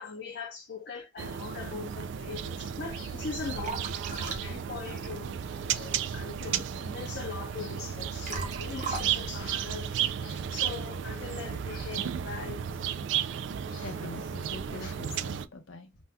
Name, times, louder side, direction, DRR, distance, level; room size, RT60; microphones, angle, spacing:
voice 1, 0.0-12.6 13.7-14.3 14.8-14.9, left 5 dB, 55° left, 0.4 m, -41 dB
sound 1, 1.2-15.5, right 8 dB, 65° right, 0.3 m, -34 dB
Liquid, 2.7-10.5, right 3 dB, 40° right, 0.7 m, -42 dB
voice 2, 13.8-15.9, left 3 dB, 85° left, 0.7 m, -43 dB
2.7 x 2.2 x 3.4 m
head